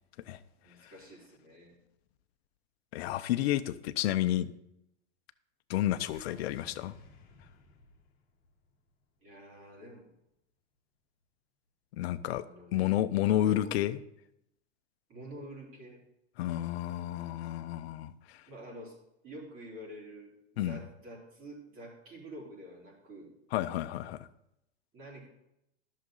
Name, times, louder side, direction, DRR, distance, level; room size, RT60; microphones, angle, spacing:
voice 1, 0.6-1.7 9.2-10.1 12.4-12.9 13.3-13.8 15.1-16.0 18.5-19.0 19.2-20.3 20.6-23.3 24.9-25.3, right 1 dB, 35° right, 3.8 m, -48 dB
voice 2, 2.9-4.5 5.7-6.9 12.0-12.4 12.7-14.0 16.4-18.4 20.6-20.8 23.5-24.3, left 13 dB, 60° left, 0.7 m, -30 dB
sound 1, 6.0-10.3, left 3 dB, 25° left, 1.8 m, -58 dB
12.0 x 6.6 x 4.0 m
hypercardioid pair, 120°, 34 cm